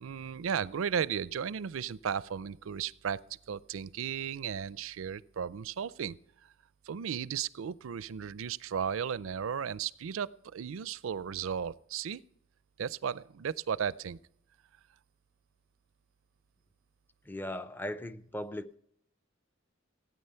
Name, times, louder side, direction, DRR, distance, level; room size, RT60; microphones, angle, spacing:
voice 1, 0.0-3.2 3.5-6.2 6.9-12.2 12.8-14.2, right 7 dB, 70° right, 0.4 m, -35 dB
voice 2, 17.2-18.8, left 1 dB, 10° left, 0.5 m, -38 dB
16.5 x 9.4 x 5.6 m
head